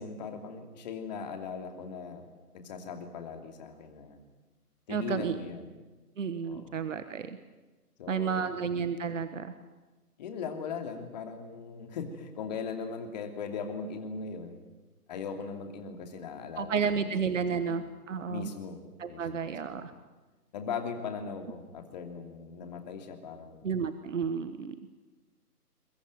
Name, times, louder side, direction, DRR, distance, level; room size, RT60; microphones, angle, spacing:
voice 1, 0.0-2.2 2.5-4.2 4.9-5.7 6.4-6.8 8.0-8.6 10.2-14.6 15.1-17.5 17.7-17.8 18.3-19.5 20.5-23.7, left 5 dB, 25° left, 5 dB, 2.8 m, -39 dB
voice 2, 4.9-5.4 6.2-7.4 8.1-9.5 16.6-18.5 19.0-19.9 23.6-24.7, right 6 dB, 50° right, 11 dB, 1.4 m, -31 dB
22.5 x 21.0 x 9.3 m, 1.2 s
figure-of-eight pair, 150°, 47 cm